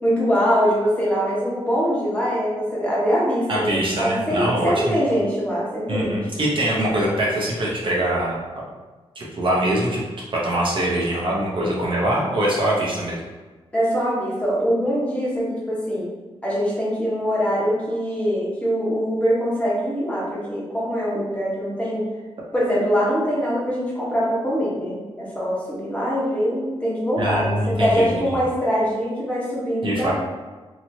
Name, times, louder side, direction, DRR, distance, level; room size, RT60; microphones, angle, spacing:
voice 1, 0.0-6.3 13.7-16.1 16.4-22.0 22.5-30.1, equal, 10° left, -7 dB, 1.2 m, -23 dB
voice 2, 3.5-5.0 5.9-8.4 9.2-10.0 10.3-13.2 27.2-28.1 29.8-30.1, right 1 dB, 55° right, -4 dB, 0.8 m, -23 dB
3.0 x 2.8 x 2.7 m, 1.3 s
cardioid pair, 90°, 11 cm